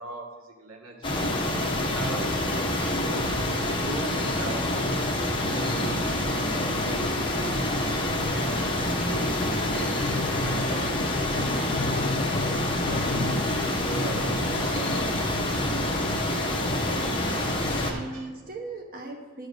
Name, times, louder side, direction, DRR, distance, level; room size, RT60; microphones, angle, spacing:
voice 1, 0.0-2.4 2.7-3.6 3.8-4.9 5.4-8.0 8.4-12.0 12.9-13.4 13.7-15.9 17.2-17.6 17.8-18.3, right 1 dB, 90° right, 1 dB, 1.8 m, -39 dB
sound 1, 1.0-17.9, left 1 dB, 25° left, 1.2 m, -27 dB
Bowed string instrument, 9.8-14.6, left 4 dB, 40° left, 0.4 m, -34 dB
voice 2, 13.0-13.5 16.8-19.5, right 3 dB, 45° right, 1 dB, 0.9 m, -39 dB
11.5 x 4.8 x 6.4 m, 1.3 s
head